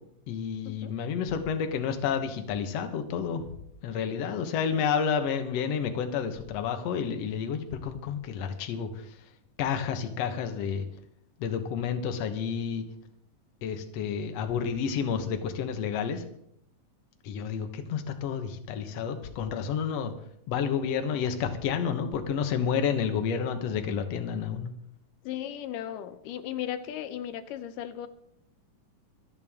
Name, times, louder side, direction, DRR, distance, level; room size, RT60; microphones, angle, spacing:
voice 1, 0.3-3.5 3.8-9.3 9.6-10.9 11.4-12.8 13.6-16.3 17.2-20.1 20.5-24.7, left 7 dB, 60° left, 7 dB, 2.0 m, -30 dB
voice 2, 25.2-28.1, left 11 dB, 85° left, 11 dB, 2.3 m, -36 dB
25.5 x 8.9 x 3.6 m, 0.73 s
omnidirectional pair, 3.7 m